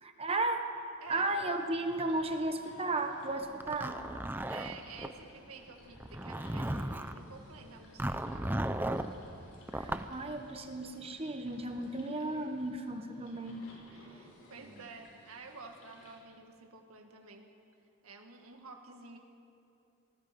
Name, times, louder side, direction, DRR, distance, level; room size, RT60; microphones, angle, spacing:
voice 1, 0.0-0.6 1.1-4.0 9.8-13.6, right 2 dB, 25° right, 6 dB, 1.1 m, -34 dB
sound 1, 1.1-16.2, left 1 dB, 85° left, 6.2 m, -58 dB
Zipper (clothing), 3.6-5.1 5.9-7.2 8.0-9.1 9.7-10.1, right 1 dB, 10° right, 0.6 m, -35 dB
voice 2, 4.5-8.6 13.2-13.3 13.9-17.5 18.0-19.2, right 4 dB, 80° right, 2 dB, 2.0 m, -51 dB
27.0 x 19.5 x 5.3 m, 2.6 s
head